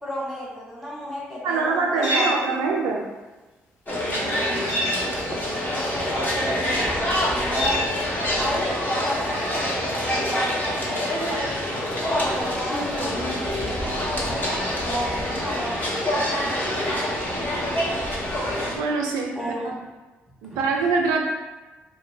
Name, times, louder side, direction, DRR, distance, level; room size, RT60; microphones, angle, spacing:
voice 1, 0.0-2.7 5.5-7.8 8.4-11.4 12.0-13.3 13.6-16.7 19.3-19.8 20.5-20.6, equal, ahead, -6 dB, 1.3 m, -33 dB
voice 2, 1.4-3.0 18.8-19.4 19.6-19.7 20.4-21.2, right 4 dB, 70° right, 1 dB, 0.4 m, -23 dB
sound 1, 2.0-2.4 4.7-5.0 7.5-7.9, left 1 dB, 60° left, 0.7 m, -25 dB
sound 2, 3.9-18.8, equal, 30° left, 1.0 m, -26 dB
2.3 x 2.0 x 3.6 m, 1.2 s
hypercardioid pair, 45°, 6 cm